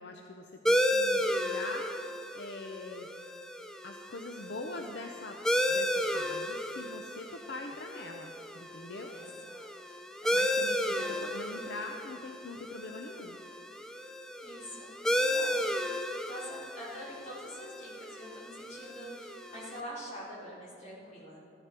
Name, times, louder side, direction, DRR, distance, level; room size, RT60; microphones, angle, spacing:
voice 1, 0.0-2.0 2.3-3.1 3.8-9.2 10.3-13.4, left 2 dB, 65° left, 3 dB, 0.7 m, -43 dB
sound 1, 0.7-19.8, equal, 5° left, 0.4 m, -33 dB
voice 2, 9.1-9.7 10.2-10.4 11.0-11.4 14.4-15.7 16.3-21.4, equal, 40° left, -6 dB, 3.5 m, -45 dB
14.0 x 11.0 x 4.4 m, 2.8 s
head